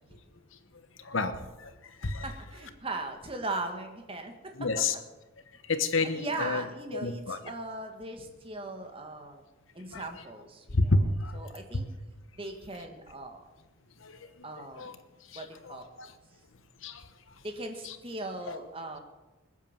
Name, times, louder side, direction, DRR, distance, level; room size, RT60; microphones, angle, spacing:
voice 1, 1.0-1.7 2.0-2.3 4.6-4.9 5.7-6.6 6.9-7.4 9.9-10.0 10.7-11.4 11.7-11.8 14.0-15.0 15.3-16.1 16.8-17.1 17.8-18.0 18.5-18.6, left 3 dB, 70° left, 10 dB, 1.2 m, -30 dB
voice 2, 2.2-4.8 6.1-9.4 9.7-10.9 11.3-11.9 12.4-13.4 14.4-15.0 15.3-15.9 17.4-19.0, right 2 dB, 25° right, 5 dB, 1.8 m, -39 dB
20.0 x 8.3 x 7.4 m, 1.1 s
head